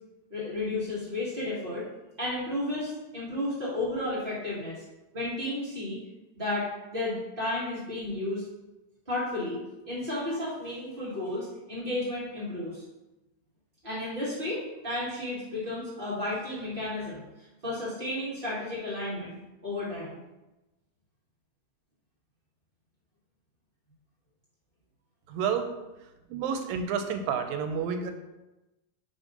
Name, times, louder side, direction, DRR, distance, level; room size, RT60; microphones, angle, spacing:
voice 1, 0.3-1.9 2.2-4.8 5.1-6.0 6.3-8.5 9.1-12.8 13.8-19.4 19.6-20.2, left 1 dB, 30° right, -9 dB, 0.9 m, -33 dB
voice 2, 25.3-25.6 26.3-28.1, right 7 dB, 85° right, 7 dB, 2.3 m, -29 dB
5.0 x 3.7 x 5.2 m, 1.0 s
omnidirectional pair, 4.0 m